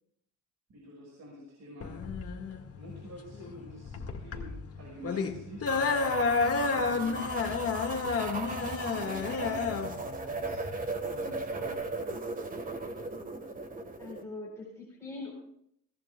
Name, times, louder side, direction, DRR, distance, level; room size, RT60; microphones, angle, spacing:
voice 1, 0.7-1.9 2.8-5.7 6.6-7.3 8.3-10.6 11.1-11.8, equal, 55° right, -2 dB, 5.5 m, -47 dB
sound 1, 1.8-11.8, left 4 dB, 45° left, 1.9 m, -31 dB
sound 2, 5.7-14.2, right 3 dB, 25° right, 1.5 m, -37 dB
voice 2, 14.0-15.3, left 3 dB, 10° left, -3 dB, 4.2 m, -42 dB
22.5 x 18.5 x 2.3 m, 0.70 s
cardioid pair, 140°, 32 cm